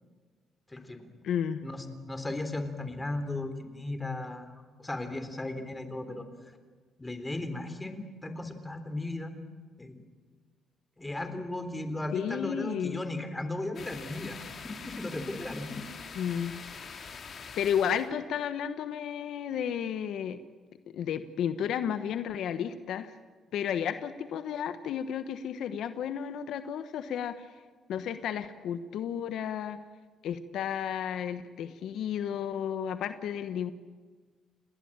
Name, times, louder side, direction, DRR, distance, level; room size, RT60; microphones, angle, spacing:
voice 1, 0.7-1.3 1.6-6.3 7.0-9.3 9.8-10.0 11.0-14.5 14.8-15.8, left 2 dB, 15° left, 9 dB, 3.8 m, -36 dB
voice 2, 1.2-1.6 12.1-13.0 16.2-16.5 17.6-20.4 20.9-23.1 23.5-27.5 27.9-29.8 30.2-33.7, left 8 dB, 75° left, 11 dB, 1.1 m, -32 dB
sound 1, 13.7-18.1, left 5 dB, 50° left, 3.7 m, -44 dB
30.0 x 19.5 x 8.9 m, 1.5 s
cardioid pair, 90°, 0 cm